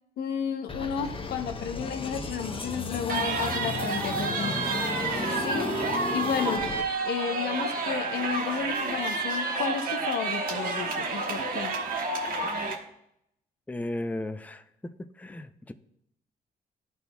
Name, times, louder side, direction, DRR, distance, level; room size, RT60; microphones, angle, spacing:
voice 1, 0.2-4.6 5.4-5.7 6.1-6.7 7.0-11.8, left 7 dB, 80° left, 7 dB, 0.7 m, -32 dB
sound 1, 0.7-6.8, left 3 dB, 35° left, 0.8 m, -34 dB
sound 2, 3.1-12.7, right 3 dB, 65° right, 1.2 m, -30 dB
voice 2, 13.7-15.7, left 1 dB, 10° left, 9 dB, 0.5 m, -36 dB
12.0 x 4.1 x 2.3 m, 0.76 s
supercardioid pair, 60°, 16 cm